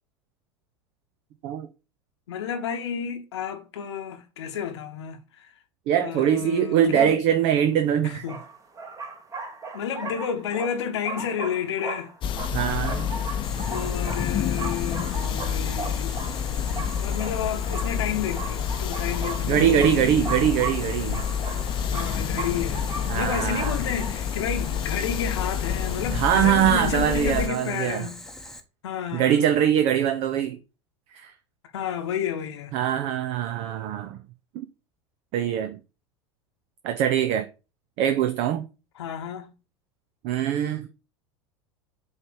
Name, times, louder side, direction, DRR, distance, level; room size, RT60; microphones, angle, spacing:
voice 1, 2.3-5.5 6.0-7.2 8.0-8.4 9.7-12.1 13.7-16.2 17.0-19.9 21.9-22.8 23.1-28.3 28.8-29.4 31.7-32.8 39.0-39.5, left 8 dB, 65° left, 1.1 m, -31 dB
voice 2, 5.9-8.2 12.5-13.1 19.5-21.2 23.1-23.8 26.1-28.1 29.1-30.6 31.1-31.3 32.7-34.2 34.5-34.6 35.3-35.8 36.8-37.5 38.0-38.7 40.2-40.9, right 9 dB, 45° right, 0.7 m, -23 dB
sound 1, 7.5-7.6 8.3-24.1, right 4 dB, 20° right, 1.4 m, -37 dB
sound 2, 12.2-27.5, left 8 dB, 30° left, 0.8 m, -28 dB
Boiling, 13.4-28.6, left 1 dB, 5° left, 1.1 m, -43 dB
8.0 x 3.2 x 5.0 m
figure-of-eight pair, 80°, 15 cm